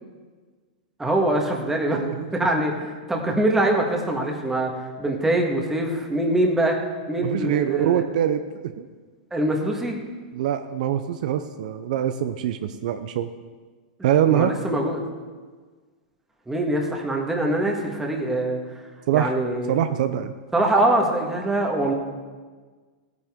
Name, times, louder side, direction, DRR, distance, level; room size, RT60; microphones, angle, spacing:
voice 1, 1.0-2.0 2.3-4.7 5.0-6.8 7.1-8.0 9.3-10.0 14.3-15.0 16.5-18.6 19.1-19.8 20.5-21.9, right 1 dB, 5° right, 1 dB, 1.6 m, -23 dB
voice 2, 1.9-2.6 7.2-8.9 10.3-13.3 14.0-14.5 19.1-19.4 19.7-20.3, right 10 dB, 65° right, 10 dB, 0.6 m, -24 dB
14.5 x 9.3 x 3.7 m, 1.5 s
hypercardioid pair, 140°, 5 cm